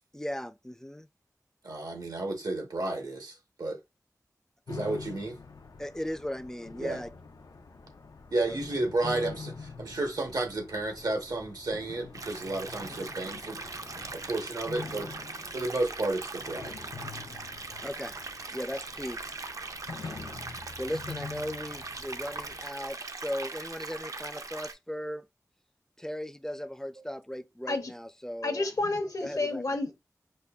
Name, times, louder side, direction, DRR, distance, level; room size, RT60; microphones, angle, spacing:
voice 1, 0.1-1.1 5.8-7.1 8.5-8.6 17.8-18.1 18.5-19.2 20.8-25.3 26.0-28.7 29.2-29.6, equal, 10° left, 0.3 m, -37 dB
voice 2, 1.6-3.8 4.7-5.4 6.8-7.0 8.3-13.6 14.1-15.1 15.5-16.7, right 2 dB, 85° right, 0.9 m, -32 dB
sound 1, 4.7-22.7, left 4 dB, 90° left, 0.4 m, -45 dB
sound 2, 12.1-24.7, right 3 dB, 60° right, 0.4 m, -40 dB
voice 3, 28.4-29.9, left 2 dB, 65° left, 0.8 m, -30 dB
5.2 x 2.2 x 2.3 m
wide cardioid pair, 50°, 6 cm